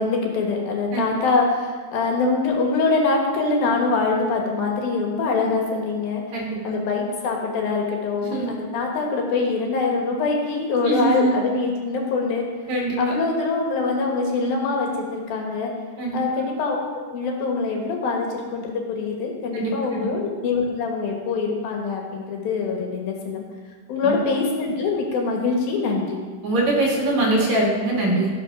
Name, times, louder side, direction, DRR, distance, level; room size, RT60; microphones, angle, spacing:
voice 1, 0.0-6.2 6.6-12.5 13.0-15.7 16.1-16.8 17.1-23.4 23.9-26.2, left 4 dB, 70° left, 0 dB, 3.1 m, -24 dB
voice 2, 6.3-6.7 8.2-8.5 10.8-11.3 12.7-13.0 16.0-16.2 19.5-20.1 24.0-24.1 26.4-28.3, right 2 dB, 50° right, -3 dB, 3.1 m, -23 dB
16.0 x 6.4 x 6.0 m, 1.6 s
omnidirectional pair, 4.6 m